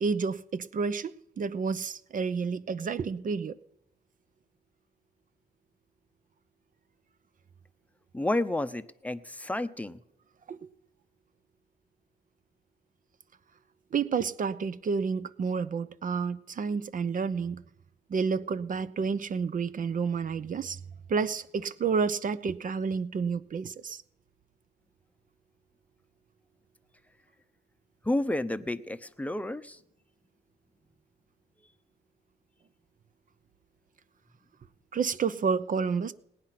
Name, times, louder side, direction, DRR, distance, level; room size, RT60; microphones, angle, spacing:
voice 1, 0.0-3.6 10.5-10.6 13.9-17.6 18.1-20.8 21.1-24.0 34.9-36.1, right 5 dB, 40° right, 0.7 m, -30 dB
voice 2, 8.1-10.0 28.0-29.8, left 1 dB, 5° left, 0.8 m, -31 dB
18.0 x 9.5 x 5.9 m
cardioid pair, 90°, 20 cm